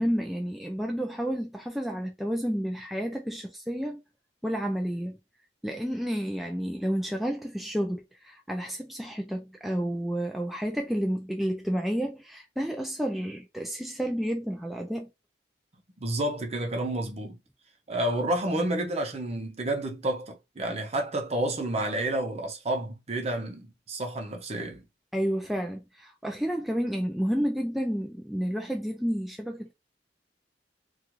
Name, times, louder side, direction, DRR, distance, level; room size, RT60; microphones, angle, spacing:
voice 1, 0.0-4.0 4.4-5.2 5.6-15.1 25.1-29.7, equal, ahead, 0.3 m, -30 dB
voice 2, 16.0-17.4 17.9-24.8, right 1 dB, 35° right, 0.7 m, -30 dB
2.4 x 2.4 x 3.0 m
head